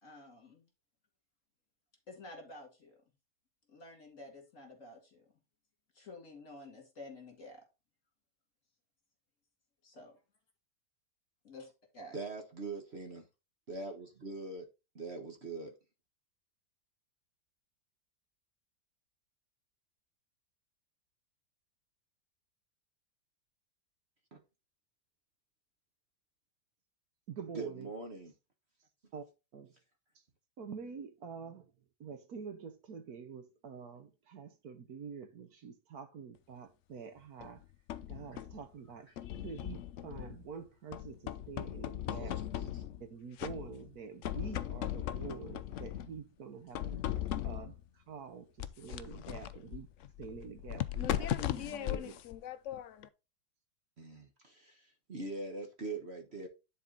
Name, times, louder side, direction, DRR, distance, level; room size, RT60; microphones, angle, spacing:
voice 1, 0.0-0.6 2.1-3.0 3.7-5.3 5.9-7.6 10.0-10.1 11.4-12.2, left 2 dB, 45° left, 2.6 m, -51 dB
voice 2, 12.1-13.2 13.7-14.6 14.9-15.7 24.3-24.4 27.5-28.3 42.1-42.3 42.6-42.8 54.0-56.5, right 3 dB, 40° right, 1.5 m, -42 dB
voice 3, 27.3-27.9 29.1-29.2 29.5-29.7 30.1-30.2 30.6-31.7 32.0-37.6 38.1-42.4 43.0-49.9 50.2-52.2, right 6 dB, 65° right, 1.4 m, -47 dB
sound 1, 37.4-38.6 39.2-40.5 40.9-43.1 43.4-43.9 44.2-46.2 46.7-47.8 48.6-53.1, left 11 dB, 70° left, 0.7 m, -38 dB
10.5 x 4.2 x 3.8 m
omnidirectional pair, 1.8 m